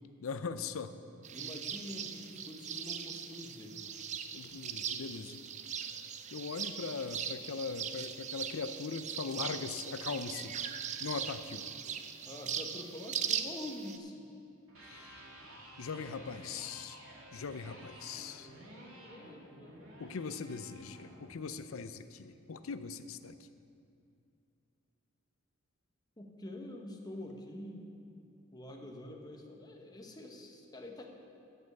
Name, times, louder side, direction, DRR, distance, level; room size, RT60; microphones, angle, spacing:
voice 1, 0.2-1.0 4.3-5.4 6.3-10.6 11.0-11.6 14.8-15.3 15.8-17.0 17.3-18.5 20.0-23.4, left 5 dB, 80° left, 12 dB, 0.5 m, -40 dB
sound 1, 1.2-14.0, right 8 dB, 35° right, 0.5 m, -40 dB
voice 2, 1.3-3.7 11.8-12.0 12.3-14.1 18.7-19.9 26.2-28.0 28.5-31.1, left 1 dB, 20° left, 2 dB, 1.1 m, -46 dB
Electric guitar, 14.6-22.7, right 1 dB, 90° right, 2.5 m, -53 dB
13.0 x 5.6 x 7.9 m, 2.5 s
head